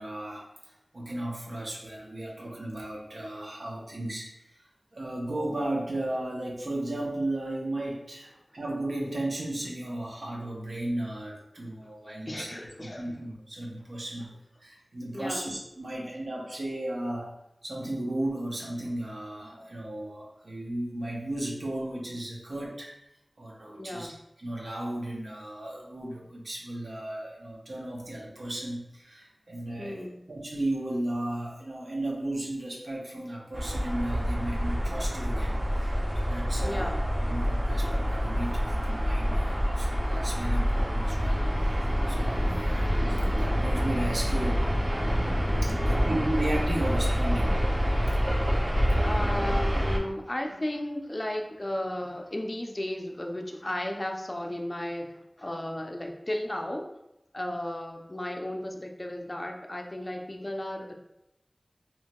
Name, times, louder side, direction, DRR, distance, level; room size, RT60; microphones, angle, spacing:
voice 1, 0.0-4.6 4.9-14.3 14.6-17.3 17.6-22.9 23.4-24.1 24.4-37.0 37.3-44.9 45.4-47.6, right 1 dB, 80° right, -3 dB, 0.5 m, -35 dB
voice 2, 12.3-13.2 15.1-15.5 23.8-24.1 29.8-30.2 36.6-37.0 45.8-46.1 49.0-56.9 57.3-60.9, left 1 dB, 35° left, 2 dB, 0.4 m, -34 dB
sound 1, 33.5-50.0, equal, 30° right, 0.5 m, -27 dB
2.8 x 2.1 x 2.8 m, 0.84 s
wide cardioid pair, 50°, 0 cm